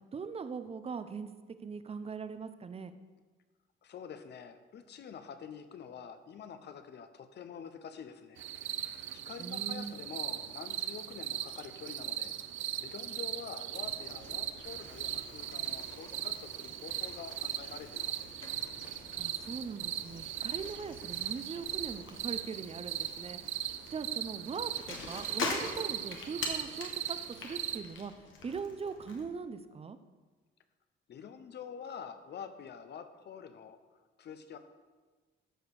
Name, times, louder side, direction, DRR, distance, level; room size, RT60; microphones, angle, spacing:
voice 1, 0.1-1.3 1.6-2.9 9.4-9.9 19.2-23.4 23.9-27.2 27.4-28.1 28.4-30.0, right 5 dB, 30° right, 11 dB, 0.7 m, -41 dB
voice 2, 3.8-8.5 9.1-12.4 12.8-18.3 31.1-33.8 34.2-34.6, left 7 dB, 60° left, 10 dB, 0.9 m, -47 dB
sound 1, 8.4-27.8, right 12 dB, 75° right, 0.5 m, -39 dB
Bicycle, 13.7-29.2, left 4 dB, 80° left, 1.5 m, -45 dB
13.5 x 5.0 x 4.8 m, 1.3 s
cardioid pair, 90°, 20 cm